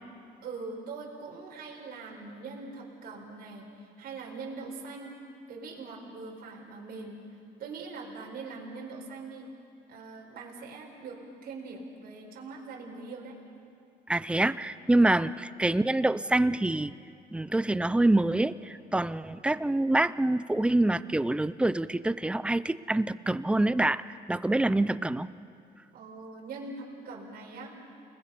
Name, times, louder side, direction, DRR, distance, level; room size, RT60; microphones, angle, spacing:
voice 1, 0.4-5.2 5.5-7.2 7.6-9.5 9.9-13.4 15.0-15.2 24.5-24.8 25.9-27.7, right 3 dB, 65° right, -1 dB, 4.3 m, -42 dB
voice 2, 14.1-15.3 15.6-16.9 17.3-24.0 24.3-25.3, right 2 dB, 5° right, 15 dB, 0.5 m, -26 dB
30.0 x 20.5 x 5.5 m, 2.4 s
cardioid pair, 110°, 17 cm